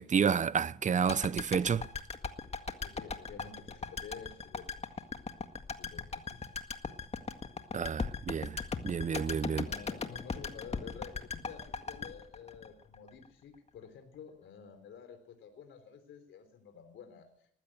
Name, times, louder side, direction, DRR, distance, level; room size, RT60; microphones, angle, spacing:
voice 1, 0.0-1.8 7.7-9.7, right 6 dB, 40° right, 0.8 m, -30 dB
sound 1, 1.1-13.3 13.5-13.6, left 4 dB, 35° left, 1.8 m, -39 dB
voice 2, 2.8-5.1 5.7-6.5 9.4-17.5, left 6 dB, 75° left, 3.7 m, -50 dB
19.5 x 15.5 x 9.0 m
cardioid pair, 90°, 20 cm